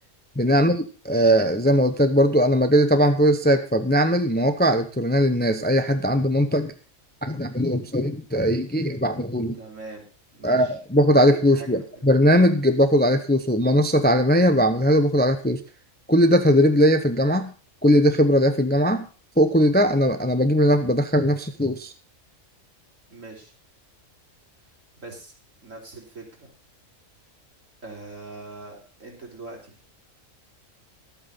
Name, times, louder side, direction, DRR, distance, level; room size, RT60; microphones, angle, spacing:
voice 1, 0.4-6.7 7.2-9.6 10.4-15.6 16.1-17.5 17.8-19.1 19.4-21.9, equal, 10° left, 8 dB, 0.7 m, -19 dB
voice 2, 9.5-10.7 11.2-12.1 23.1-23.5 25.0-25.3 25.6-26.5 27.8-29.8, right 3 dB, 70° right, -1 dB, 4.1 m, -42 dB
12.5 x 8.7 x 5.5 m, 0.36 s
omnidirectional pair, 1.4 m